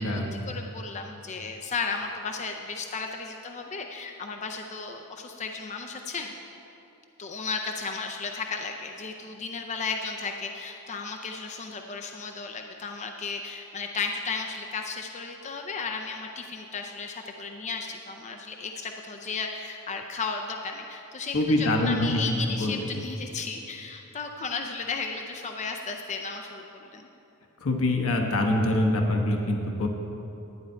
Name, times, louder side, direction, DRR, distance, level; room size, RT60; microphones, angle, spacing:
voice 1, 0.0-6.3 7.2-27.1, left 4 dB, 30° left, 3 dB, 0.5 m, -34 dB
voice 2, 21.3-22.8 27.6-29.9, left 1 dB, 65° left, 2 dB, 1.1 m, -24 dB
11.5 x 9.3 x 4.5 m, 3.0 s
head